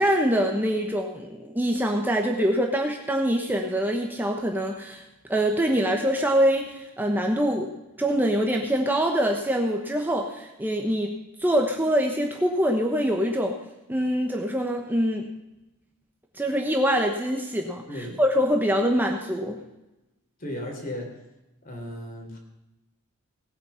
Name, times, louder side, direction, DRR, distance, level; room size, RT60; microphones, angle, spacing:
voice 1, 0.0-5.0 5.3-7.7 8.0-13.5 13.9-15.2 16.3-19.6, equal, 10° right, 2 dB, 1.1 m, -24 dB
voice 2, 17.9-18.2 20.4-21.1 21.6-22.4, left 1 dB, 40° left, 2 dB, 3.8 m, -35 dB
18.5 x 8.8 x 5.7 m, 0.95 s
head